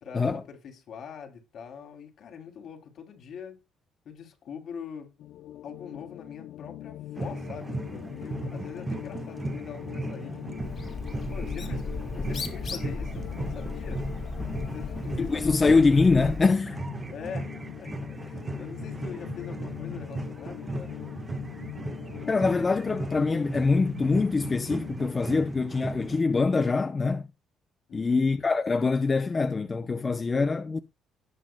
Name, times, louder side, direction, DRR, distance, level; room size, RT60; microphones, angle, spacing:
voice 1, 0.0-3.6 4.0-5.1 5.6-10.7 11.3-11.9 12.1-14.1 14.6-15.9 17.1-21.0 27.9-28.2, left 7 dB, 60° left, 2.8 m, -43 dB
sound 1, 5.2-24.9, left 13 dB, 80° left, 0.5 m, -42 dB
sound 2, 7.2-26.2, right 2 dB, 20° right, 1.2 m, -37 dB
Bird, 10.6-16.5, left 4 dB, 45° left, 2.3 m, -36 dB
voice 2, 15.2-16.8 22.3-27.3 27.9-30.8, left 4 dB, 25° left, 0.6 m, -24 dB
17.5 x 6.1 x 2.2 m
cardioid pair, 115°, 0 cm